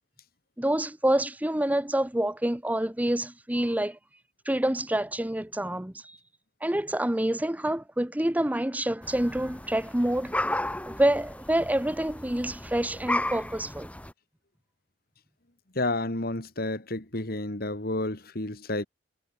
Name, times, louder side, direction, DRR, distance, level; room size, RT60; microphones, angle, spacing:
voice 1, 0.6-4.0 4.4-6.2 6.6-10.3 10.8-13.9, right 1 dB, 10° right, 0.9 m, -27 dB
sound 1, 9.0-14.1, left 1 dB, 10° left, 4.1 m, -34 dB
voice 2, 15.7-18.9, left 2 dB, 55° left, 2.9 m, -30 dB
head